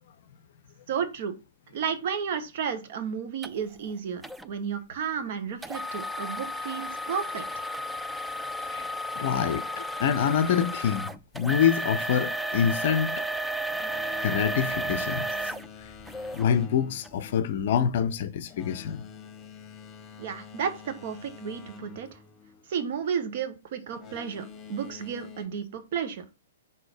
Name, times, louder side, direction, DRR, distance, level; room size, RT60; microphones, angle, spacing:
voice 1, 0.9-1.4 1.7-7.4 20.2-22.1 22.7-24.4 24.7-26.2, right 7 dB, 50° right, 1.1 m, -32 dB
sound 1, 3.4-3.5 4.2-4.5 5.6-16.5 17.0-17.1 17.7-17.9, equal, 5° right, 0.3 m, -33 dB
voice 2, 9.2-13.3 14.2-15.5 15.8-15.9 16.3-19.0, left 8 dB, 50° left, 0.5 m, -26 dB
Boat Water vehicle, 13.6-23.1 23.8-25.5, left 6 dB, 20° left, 1.3 m, -47 dB
5.5 x 4.0 x 4.9 m
figure-of-eight pair, 115°, 0 cm